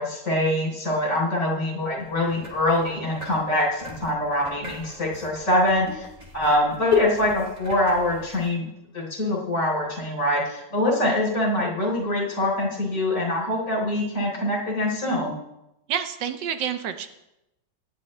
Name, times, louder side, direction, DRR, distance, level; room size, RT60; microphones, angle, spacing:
voice 1, 0.0-6.1 6.3-8.7 8.9-15.3, left 1 dB, 40° left, -3 dB, 4.1 m, -24 dB
sound 1, 2.0-8.5, equal, 20° right, 2.7 m, -44 dB
voice 2, 15.9-17.1, right 8 dB, 75° right, 9 dB, 1.4 m, -28 dB
18.0 x 11.5 x 3.3 m, 0.90 s
omnidirectional pair, 2.0 m